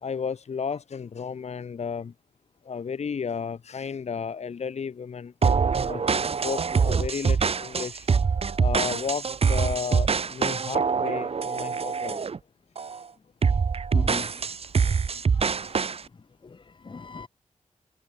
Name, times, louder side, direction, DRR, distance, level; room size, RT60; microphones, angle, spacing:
voice 1, 0.0-2.1 2.6-5.3 5.9-8.1 8.6-12.2, left 6 dB, 60° left, 1.0 m, -33 dB
sound 1, 5.4-12.4 12.8-13.0 13.4-16.0, right 5 dB, 50° right, 0.9 m, -24 dB
voice 2, 13.9-14.6 15.1-15.8 16.4-17.3, left 4 dB, 40° left, 1.2 m, -40 dB
wide cardioid pair, 100°, 13 cm